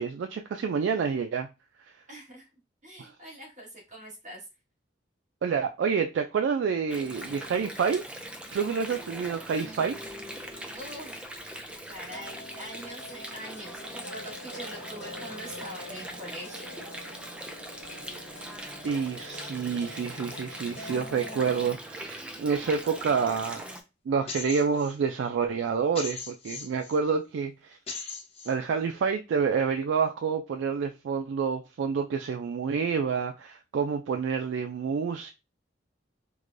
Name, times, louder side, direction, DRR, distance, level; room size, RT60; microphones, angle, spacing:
voice 1, 0.0-1.5 3.0-3.1 5.4-8.0 8.5-10.0 18.8-23.6 24.1-27.8 28.5-35.3, right 6 dB, 80° right, 0.3 m, -28 dB
voice 2, 2.1-2.5 2.8-4.4 10.7-11.2 11.9-16.8, right 1 dB, 40° right, 1.6 m, -43 dB
Water, 6.9-23.8, right 1 dB, 5° right, 0.3 m, -41 dB
sound 1, 12.1-21.7, left 1 dB, 70° left, 0.7 m, -46 dB
sound 2, 24.3-24.9 25.9-27.0 27.9-28.5, left 4 dB, 35° left, 0.8 m, -38 dB
4.7 x 2.2 x 2.5 m
head